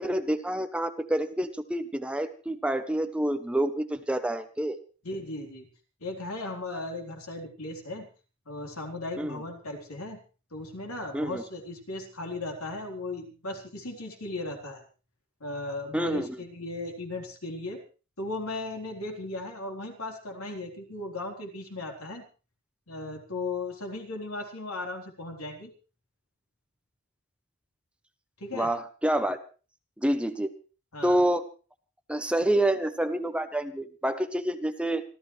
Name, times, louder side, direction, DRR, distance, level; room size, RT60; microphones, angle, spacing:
voice 1, 0.0-4.8 9.2-9.4 11.1-11.4 15.9-16.4 28.5-29.4 30.0-30.5 31.0-31.4 32.1-35.0, right 1 dB, 5° right, 9 dB, 0.9 m, -28 dB
voice 2, 5.0-5.7 6.0-8.1 8.5-10.2 10.5-14.8 15.4-17.8 18.2-22.2 22.9-25.7 28.4-28.7 30.9-31.2, left 2 dB, 85° left, 2 dB, 3.9 m, -36 dB
26.5 x 13.5 x 3.3 m, 0.36 s
head